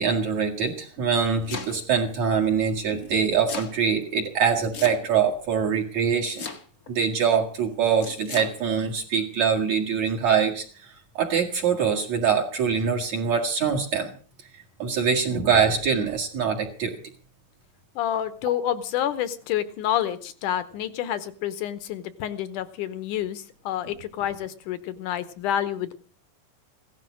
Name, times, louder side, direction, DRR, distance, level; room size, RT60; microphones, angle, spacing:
voice 1, 0.0-6.5 6.9-14.1 14.5-17.0, right 6 dB, 55° right, -1 dB, 2.9 m, -24 dB
Domestic sounds home sounds, 1.0-2.0 3.0-3.8 4.7-5.3 6.3-6.9 8.0-8.5, left 5 dB, 55° left, 1.0 m, -36 dB
voice 2, 18.0-25.9, left 11 dB, 70° left, 14 dB, 2.2 m, -28 dB
16.5 x 12.5 x 6.2 m, 0.41 s
omnidirectional pair, 4.1 m